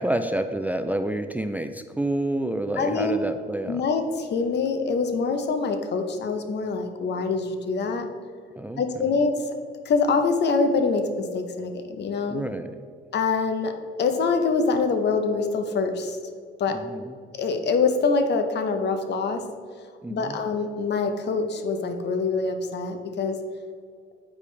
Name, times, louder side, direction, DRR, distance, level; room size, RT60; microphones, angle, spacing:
voice 1, 0.0-3.8 8.6-9.1 12.3-12.8 16.7-17.2 20.0-20.4, right 1 dB, 10° right, 8 dB, 0.3 m, -29 dB
voice 2, 2.8-3.2 3.7-8.0 8.8-9.3 9.8-12.4 13.1-13.7 14.0-16.2 16.6-16.8 17.3-19.4 20.1-23.4, left 4 dB, 60° left, 7 dB, 0.8 m, -25 dB
8.4 x 5.1 x 3.3 m, 2.1 s
cardioid pair, 90°, 20 cm